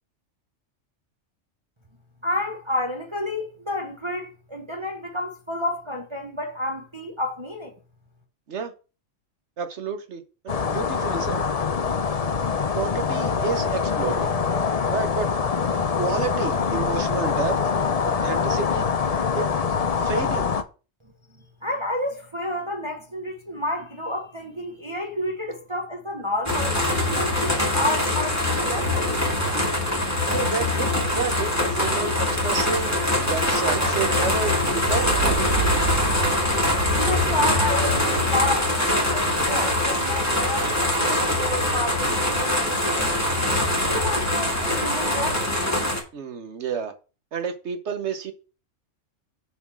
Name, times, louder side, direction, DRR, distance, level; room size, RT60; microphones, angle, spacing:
voice 1, 2.2-7.7 21.6-29.1 37.0-43.3 43.9-45.4, left 1 dB, 25° right, 1.1 m, -30 dB
voice 2, 9.6-11.5 12.8-14.3 14.9-15.3 16.0-17.6 18.0-18.9 19.3-19.5 20.0-20.5 30.3-35.8 46.1-46.9 47.3-48.3, right 5 dB, 65° right, 1.2 m, -30 dB
sound 1, 10.5-20.6, left 6 dB, 40° left, 0.5 m, -24 dB
sound 2, 26.5-46.0, left 1 dB, 15° left, 2.0 m, -23 dB
7.1 x 4.3 x 6.0 m
omnidirectional pair, 1.3 m